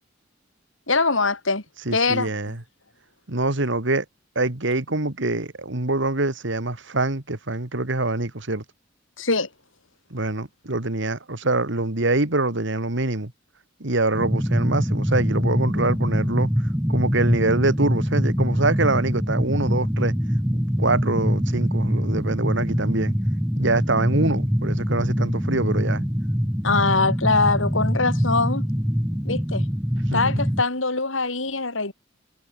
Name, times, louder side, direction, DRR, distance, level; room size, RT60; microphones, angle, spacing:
voice 1, 0.9-1.6 1.9-2.3 9.2-9.5 26.6-28.6 29.2-29.7 30.1-31.9, left 3 dB, 75° left, 3.9 m, -22 dB
voice 2, 1.9-2.6 3.3-4.1 4.4-8.6 10.1-13.3 13.8-16.5 16.9-20.1 20.8-23.2 23.6-26.0 30.1-30.4, right 2 dB, 65° right, 2.2 m, -24 dB
sound 1, 14.1-30.6, equal, 5° right, 3.0 m, -24 dB
head